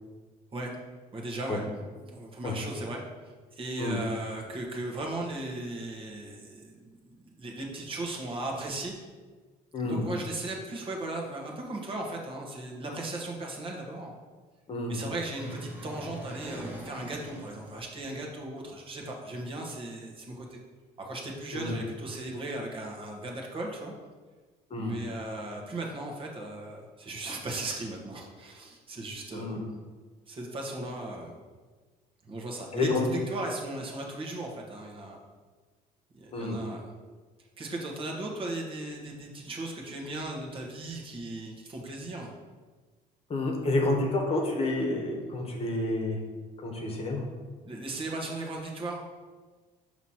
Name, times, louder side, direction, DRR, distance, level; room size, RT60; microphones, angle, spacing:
voice 1, 1.1-1.6 2.0-3.0 3.5-8.9 9.8-14.1 14.9-20.6 21.0-23.9 24.7-29.6 30.3-31.4 32.2-35.2 36.1-36.8 37.6-42.3 47.6-49.0, right 2 dB, 30° right, -1 dB, 1.3 m, -37 dB
voice 2, 9.7-10.1 14.7-15.0 21.5-21.8 24.7-25.0 29.3-29.6 30.8-30.9 32.7-33.1 36.3-36.6 43.3-46.2 46.6-47.3, left 2 dB, 35° left, 1 dB, 1.2 m, -29 dB
sound 1, 15.3-18.1, equal, 10° right, 1.1 m, -43 dB
5.8 x 3.1 x 5.6 m, 1.4 s
cardioid pair, 110°, 17 cm